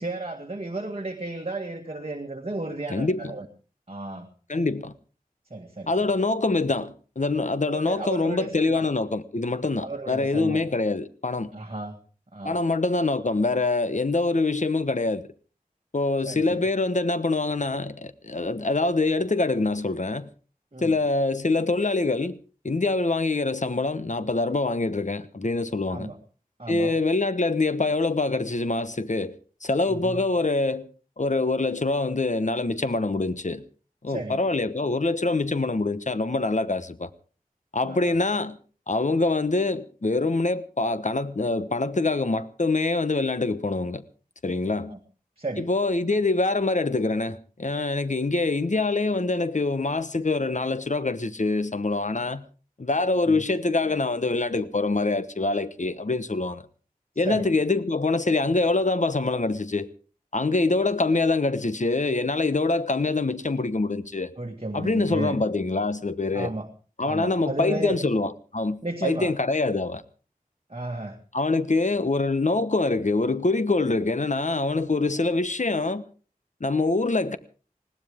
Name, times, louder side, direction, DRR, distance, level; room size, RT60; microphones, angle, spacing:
voice 1, 0.0-3.5 3.9-4.3 5.5-5.9 7.7-8.8 9.8-10.6 11.5-12.0 12.3-12.6 16.3-16.7 20.7-21.0 25.9-26.2 26.6-27.0 29.9-30.2 34.1-34.4 37.8-38.2 44.9-45.0 45.4-45.7 53.3-53.4 57.2-57.5 64.4-65.4 66.3-66.7 67.0-68.0 68.8-69.3 70.7-71.2, right 2 dB, 40° right, 1.9 m, -33 dB
voice 2, 2.9-3.3 4.5-4.9 5.9-11.5 12.4-15.2 15.9-20.3 20.8-22.4 22.6-26.1 26.7-29.3 29.6-30.9 31.2-33.6 34.0-37.1 37.7-38.6 38.9-44.0 44.4-44.9 45.6-52.4 52.8-56.6 57.2-59.9 60.3-64.3 64.7-66.5 67.0-70.0 71.3-76.1 76.6-77.4, left 3 dB, 55° left, 1.0 m, -25 dB
20.5 x 17.5 x 3.7 m
wide cardioid pair, 45°, 15 cm